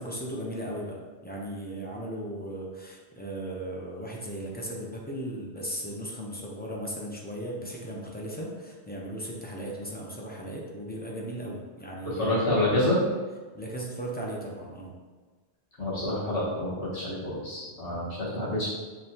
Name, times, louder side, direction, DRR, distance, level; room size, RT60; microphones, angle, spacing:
voice 1, 0.0-12.4 13.5-14.9 18.2-18.4, right 1 dB, 10° left, -3 dB, 0.5 m, -37 dB
voice 2, 12.2-13.0 15.8-18.7, left 1 dB, 90° left, -9 dB, 1.8 m, -27 dB
5.2 x 3.4 x 2.9 m, 1.3 s
omnidirectional pair, 1.1 m